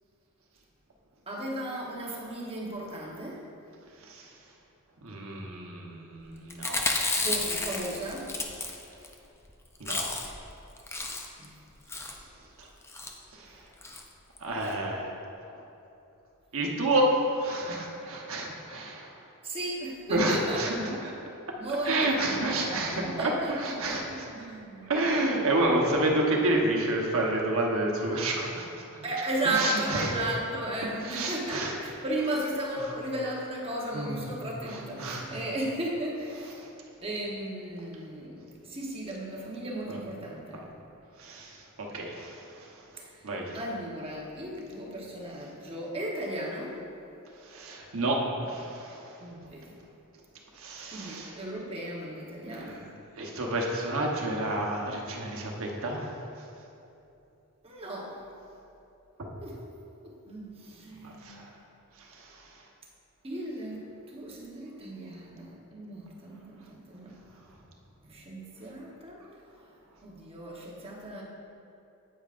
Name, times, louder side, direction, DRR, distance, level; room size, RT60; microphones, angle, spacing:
voice 1, 1.3-3.5 7.2-8.3 11.4-11.6 19.4-20.9 21.5-24.9 29.0-36.6 37.0-40.7 43.0-43.2 43.5-46.8 49.2-49.8 50.9-52.9 57.6-58.2 59.4-59.6 60.0-61.4 63.2-67.2 68.0-69.2 70.0-71.2, right 1 dB, 25° right, -3 dB, 1.1 m, -35 dB
voice 2, 5.0-6.9 9.8-10.1 12.6-12.7 13.3-13.6 14.4-15.1 16.5-19.1 20.1-21.1 21.8-24.3 24.9-29.0 29.5-30.1 31.0-31.7 33.9-34.2 34.7-35.2 36.6-36.7 39.9-40.0 41.2-42.7 43.2-43.6 47.4-49.2 50.5-51.3 52.5-52.7 53.2-56.2 59.2-59.3 61.0-61.5 62.1-62.4, right 1 dB, 65° right, -1 dB, 1.1 m, -30 dB
Chewing mastication, 6.5-9.1 9.4-9.5 9.7-10.4 10.8-11.4 11.9-12.2 12.8-13.1 13.8-14.0 14.4-14.5 14.6-14.7, left 3 dB, 10° left, 0.4 m, -32 dB
9.0 x 8.7 x 2.5 m, 2.8 s
head